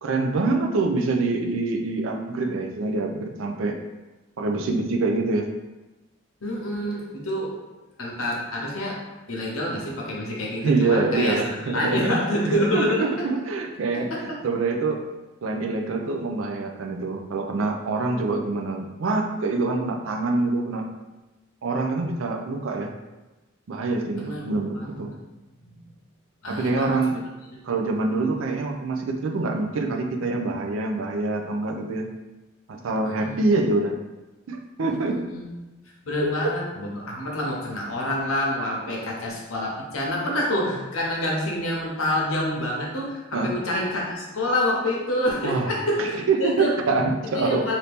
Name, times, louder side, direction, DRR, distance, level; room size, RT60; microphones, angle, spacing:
voice 1, 0.0-3.8 4.4-5.5 10.6-15.0 15.4-20.9 21.6-22.9 23.7-25.1 26.5-27.2 27.6-32.1 32.7-34.0 34.5-35.3 36.2-36.3 38.9-39.1 40.6-40.7 43.3-43.5 45.4-45.7 46.0-47.8, right 3 dB, 70° right, 3 dB, 0.4 m, -25 dB
voice 2, 6.4-7.5 8.0-9.0 9.3-13.1 13.9-14.2 24.2-25.2 25.6-26.0 26.4-27.2 27.5-27.6 33.2-33.4 34.9-35.5 36.1-46.7 47.3-47.8, left 1 dB, 85° left, -2 dB, 0.8 m, -27 dB
2.8 x 2.6 x 3.4 m, 1.1 s
head